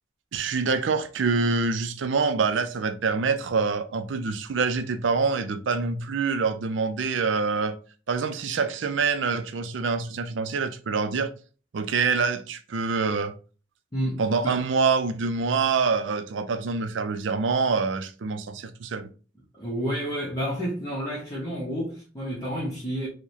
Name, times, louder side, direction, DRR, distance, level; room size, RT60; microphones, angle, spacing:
voice 1, 0.3-7.8 8.1-11.3 11.7-13.3 14.2-19.1, right 4 dB, 80° right, 0.4 m, -25 dB
voice 2, 13.9-14.6 19.5-23.1, equal, 20° left, 0.8 m, -30 dB
4.6 x 2.2 x 2.7 m
head